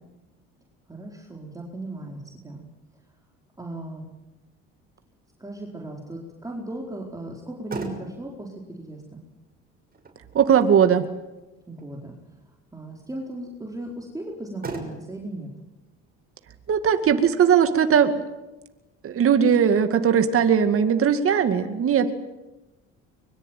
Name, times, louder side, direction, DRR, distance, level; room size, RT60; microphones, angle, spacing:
voice 1, 0.9-2.6 3.6-4.1 5.4-9.2 11.7-12.2 12.7-15.5, right 1 dB, 10° right, -1 dB, 4.6 m, -37 dB
Motor vehicle (road), 7.3-20.3, right 3 dB, 30° right, 6.5 m, -44 dB
voice 2, 10.3-11.1 16.7-18.1 19.0-22.1, right 7 dB, 45° right, 8 dB, 2.2 m, -19 dB
24.0 x 22.5 x 9.3 m, 1.1 s
supercardioid pair, 85°, 30 cm